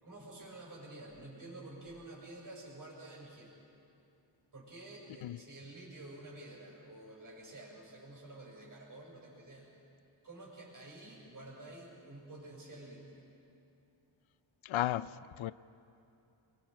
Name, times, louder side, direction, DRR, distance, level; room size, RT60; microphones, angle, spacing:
voice 1, 0.0-3.5 4.5-9.7 10.2-13.2, right 2 dB, 40° right, 5.9 m, -50 dB
voice 2, 14.6-15.5, left 13 dB, 80° left, 0.5 m, -34 dB
27.0 x 23.0 x 4.8 m
wide cardioid pair, 165°, 48 cm